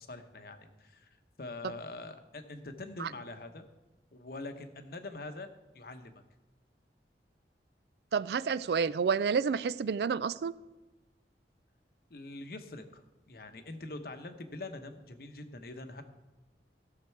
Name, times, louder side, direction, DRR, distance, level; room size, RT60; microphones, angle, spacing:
voice 1, 0.0-3.6 4.1-5.5 5.7-6.2 12.1-16.0, left 2 dB, 55° left, 7 dB, 0.9 m, -44 dB
voice 2, 8.1-10.5, right 6 dB, 65° right, 18 dB, 0.3 m, -29 dB
16.0 x 6.7 x 4.6 m, 1.1 s
head